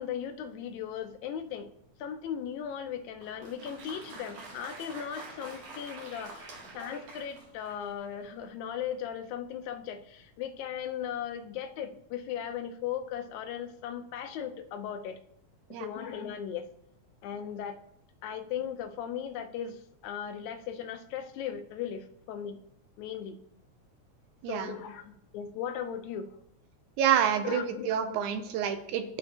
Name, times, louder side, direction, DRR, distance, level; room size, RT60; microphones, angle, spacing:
voice 1, 0.0-1.7 2.0-15.2 15.7-16.7 17.2-17.8 18.2-22.6 23.0-23.4 24.5-26.3 27.4-28.1, left 9 dB, 80° left, 8 dB, 1.9 m, -37 dB
Applause, 3.2-8.0, right 2 dB, 60° right, 2.3 m, -47 dB
voice 2, 24.4-24.8 27.0-29.0, right 9 dB, 80° right, 8 dB, 1.9 m, -28 dB
12.0 x 4.2 x 2.8 m, 0.75 s
omnidirectional pair, 3.6 m